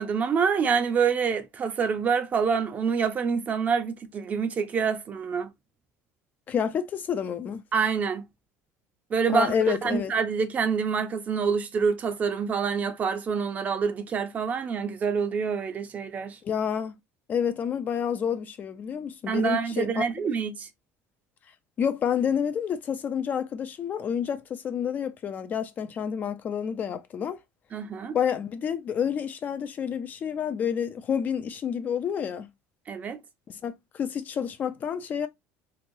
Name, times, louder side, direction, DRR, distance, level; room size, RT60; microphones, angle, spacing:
voice 1, 0.0-5.5 7.7-8.3 9.1-16.4 19.3-20.7 27.7-28.2 32.9-33.2, right 6 dB, 30° right, 0.5 m, -26 dB
voice 2, 6.5-7.6 9.3-10.1 16.4-17.0 17.3-20.0 21.8-27.4 28.1-32.5 33.5-35.3, left 8 dB, 30° left, 0.3 m, -29 dB
3.0 x 2.9 x 2.6 m
cardioid pair, 145°, 5 cm